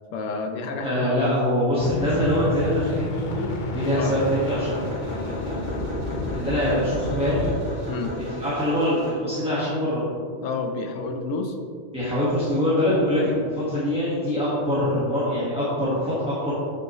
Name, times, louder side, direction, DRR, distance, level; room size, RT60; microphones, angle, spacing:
voice 1, 0.1-1.2 4.0-4.1 7.9-8.1 10.4-11.6, left 3 dB, 85° left, 5 dB, 1.1 m, -29 dB
voice 2, 0.8-5.7 6.3-7.9 8.3-10.0 11.9-16.5, left 1 dB, 5° right, -9 dB, 1.3 m, -24 dB
sound 1, 1.8-7.5, left 2 dB, 50° left, 0.7 m, -30 dB
sound 2, 3.7-9.1, equal, 25° right, 1.4 m, -36 dB
7.7 x 6.4 x 3.0 m, 2.2 s
omnidirectional pair, 1.3 m